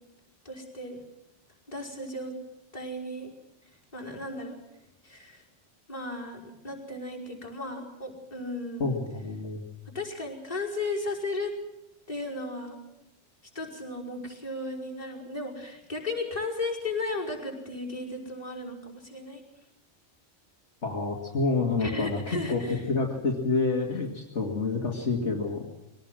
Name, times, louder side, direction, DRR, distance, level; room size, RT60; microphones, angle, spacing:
voice 1, 0.4-1.0 1.7-2.3 2.7-3.3 3.9-4.6 5.0-5.4 5.9-9.0 9.9-11.5 12.1-12.8 13.5-19.4 21.8-22.8, left 2 dB, 30° left, -3 dB, 5.5 m, -35 dB
voice 2, 8.8-9.6 20.8-22.6 22.9-25.6, left 3 dB, 70° left, -1 dB, 2.6 m, -28 dB
22.5 x 18.0 x 7.6 m, 0.91 s
omnidirectional pair, 1.2 m